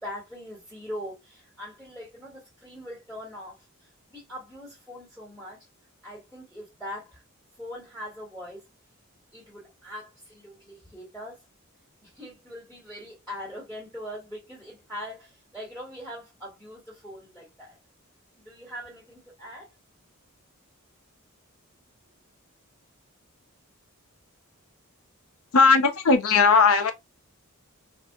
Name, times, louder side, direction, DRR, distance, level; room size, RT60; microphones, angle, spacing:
voice 1, 0.0-5.7 6.0-7.2 7.6-8.7 9.3-11.4 12.0-17.8 18.4-19.7, equal, 5° left, 1.7 m, -41 dB
voice 2, 25.5-26.9, left 4 dB, 70° left, 0.5 m, -18 dB
2.6 x 2.4 x 2.3 m
head